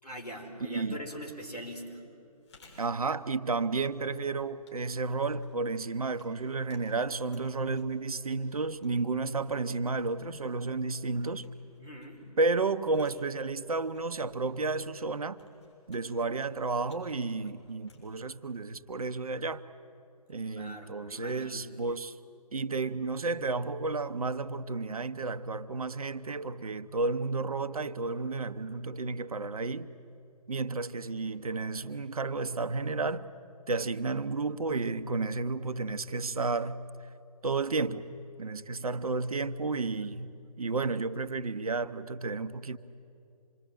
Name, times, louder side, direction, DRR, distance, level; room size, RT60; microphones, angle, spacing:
voice 1, 0.0-2.0 11.8-12.3 20.6-21.7, equal, 85° left, 5.0 m, -42 dB
voice 2, 0.6-1.0 2.8-11.5 12.4-15.4 15.9-19.6 20.3-22.1 22.5-29.9 30.5-33.3 33.7-36.8 37.4-38.1 38.4-40.3 40.6-42.8, right 3 dB, 65° right, 1.1 m, -32 dB
Chewing mastication, 2.3-19.1, left 3 dB, 45° left, 7.0 m, -63 dB
27.0 x 22.5 x 9.2 m
figure-of-eight pair, 140°, 20 cm